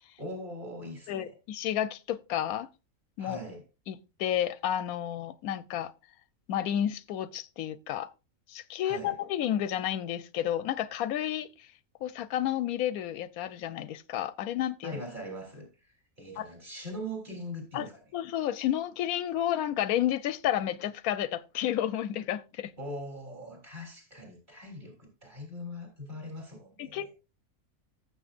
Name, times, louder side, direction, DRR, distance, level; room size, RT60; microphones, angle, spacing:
voice 1, 0.2-1.3 3.2-3.7 8.8-9.1 14.8-17.9 22.8-27.0, equal, 35° right, 3.6 m, -41 dB
voice 2, 1.1-2.7 3.2-3.4 3.9-5.9 6.5-8.1 8.5-11.7 12.0-15.0 16.4-16.5 17.7-17.9 18.1-22.7 26.8-27.1, left 11 dB, 90° left, 1.1 m, -31 dB
14.5 x 7.2 x 2.5 m
omnidirectional pair, 1.5 m